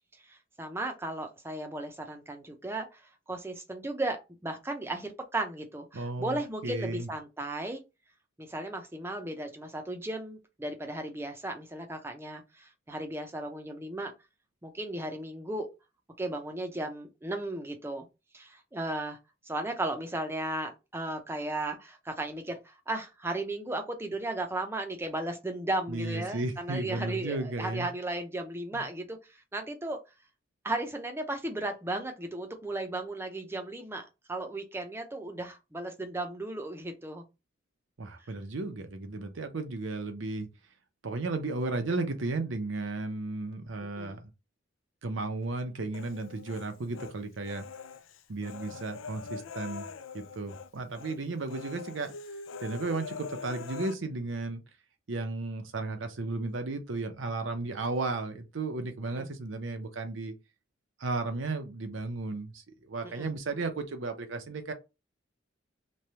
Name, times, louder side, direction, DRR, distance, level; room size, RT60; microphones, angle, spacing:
voice 1, 0.3-3.0 3.3-7.8 8.4-14.1 14.6-15.7 16.2-18.0 18.3-19.2 19.5-29.2 29.5-30.0 30.6-37.2 44.0-44.2 59.1-59.3 63.0-63.3, right 2 dB, 10° right, 0.5 m, -35 dB
voice 2, 5.9-7.1 25.9-27.9 28.7-28.8 38.0-40.5 41.0-44.3 45.0-47.7 48.3-49.9 50.1-52.1 52.6-54.6 55.1-60.3 61.0-64.7, right 3 dB, 85° right, 0.7 m, -34 dB
Human voice, 45.9-47.1 47.5-50.7 50.9-51.2 51.5-53.9, left 5 dB, 85° left, 0.4 m, -43 dB
3.2 x 2.2 x 2.7 m
head